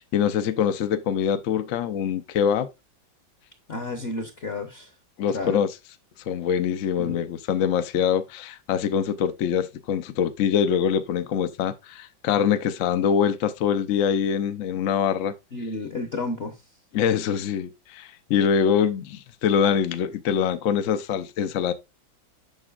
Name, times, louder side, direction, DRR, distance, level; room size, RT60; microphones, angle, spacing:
voice 1, 0.0-2.7 5.2-5.7 6.3-15.3 16.9-21.7, left 8 dB, 75° left, 0.7 m, -24 dB
voice 2, 3.7-4.9 5.3-5.6 7.0-7.3 15.5-16.6, left 3 dB, 45° left, 0.8 m, -31 dB
7.8 x 6.1 x 2.4 m
omnidirectional pair, 2.1 m